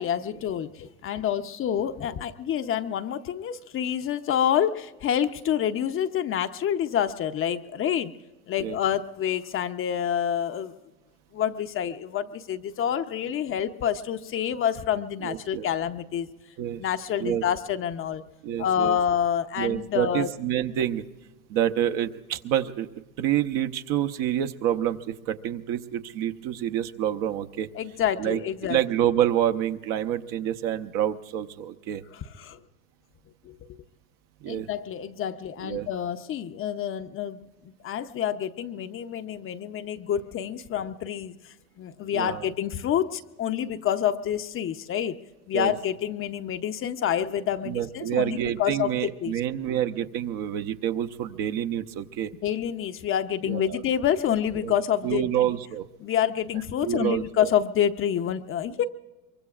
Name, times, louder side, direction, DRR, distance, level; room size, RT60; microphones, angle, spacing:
voice 1, 0.0-8.1 8.5-10.7 11.3-16.3 16.8-18.2 18.6-20.3 27.7-28.8 32.1-32.6 33.4-33.6 34.5-45.2 45.5-49.4 52.4-55.5 56.0-58.8, left 9 dB, 30° left, 9 dB, 0.7 m, -28 dB
voice 2, 15.2-15.7 16.6-16.8 17.2-17.4 18.4-19.0 19.6-21.0 21.5-22.9 23.2-27.7 28.2-28.4 28.7-32.0 34.4-34.7 35.6-35.9 42.1-42.5 45.5-45.7 47.7-52.3 53.4-53.8 54.6-54.7 55.0-55.8 56.8-57.5, right 11 dB, 55° right, 9 dB, 0.9 m, -27 dB
24.0 x 23.5 x 2.4 m, 1.1 s
hypercardioid pair, 100°, 41 cm